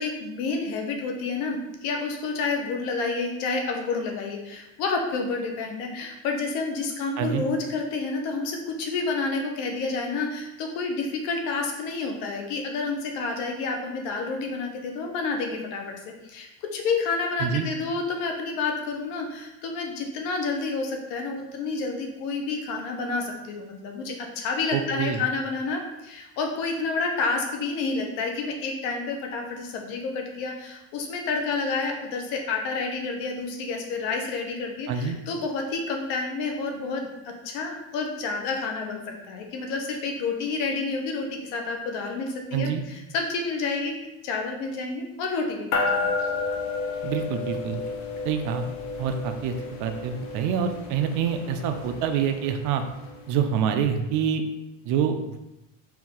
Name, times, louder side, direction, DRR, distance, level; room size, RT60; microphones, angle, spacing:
voice 1, 0.0-43.9 44.2-46.1, left 4 dB, 80° left, 2 dB, 1.0 m, -29 dB
voice 2, 24.7-25.2 34.9-35.2 42.5-42.8 47.0-47.9 48.2-48.7 49.0-49.5 49.8-52.8 53.3-54.4 54.8-55.4, right 8 dB, 55° right, 7 dB, 0.5 m, -26 dB
sound 1, 45.7-53.4, left 4 dB, 55° left, 0.7 m, -31 dB
4.5 x 2.6 x 3.7 m, 0.94 s
cardioid pair, 150°, 37 cm